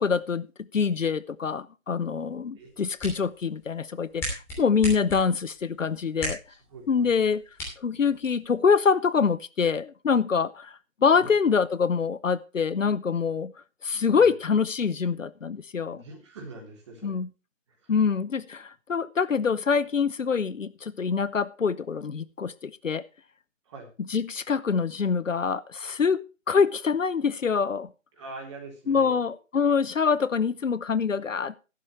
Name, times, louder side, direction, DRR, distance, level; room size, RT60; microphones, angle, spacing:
voice 1, 0.0-6.4 6.9-7.4 7.8-13.5 13.8-16.0 17.0-17.3 17.9-23.1 24.0-27.9 28.9-31.6, left 5 dB, 70° left, 0.8 m, -25 dB
sound 1, 2.6-8.6, equal, 5° left, 3.0 m, -39 dB
voice 2, 6.7-7.1 11.1-11.3 14.1-14.2 15.9-17.2 23.7-23.9 28.2-29.2, right 3 dB, 20° right, 3.7 m, -43 dB
13.5 x 11.5 x 3.2 m
figure-of-eight pair, 160°, 39 cm